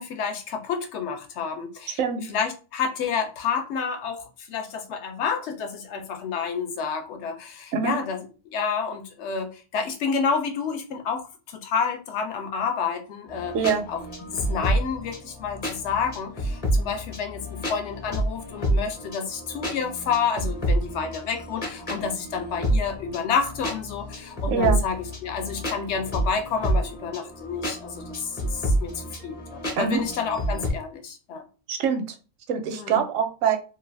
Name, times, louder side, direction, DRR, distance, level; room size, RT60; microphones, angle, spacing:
voice 1, 0.0-2.0 2.3-8.3 8.5-13.6 13.9-14.0 14.3-31.4 32.7-33.0, left 6 dB, 65° left, 0.9 m, -29 dB
sound 1, 13.3-30.7, right 1 dB, 30° left, 0.9 m, -29 dB
voice 2, 13.5-13.9 24.5-24.8 29.8-30.0 31.7-32.0 32.5-33.6, right 7 dB, 85° right, 1.0 m, -24 dB
2.6 x 2.4 x 3.3 m
omnidirectional pair, 1.3 m